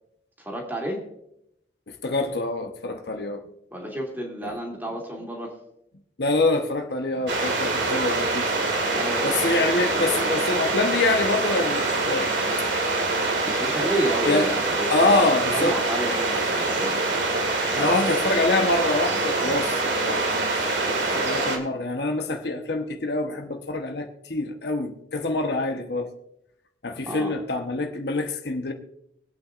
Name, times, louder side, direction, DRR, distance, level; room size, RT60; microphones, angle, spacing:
voice 1, 0.4-1.0 3.7-5.5 8.9-10.3 13.4-16.9 17.7-17.9 27.1-27.3, right 1 dB, 10° right, 2.6 m, -31 dB
voice 2, 1.9-3.4 4.4-4.6 6.2-8.5 9.2-12.3 14.3-14.5 14.9-15.8 17.8-26.1 26.8-28.7, left 2 dB, 65° left, 1.1 m, -25 dB
sound 1, 7.3-21.6, right 3 dB, 85° right, 2.1 m, -25 dB
24.0 x 8.6 x 2.5 m
head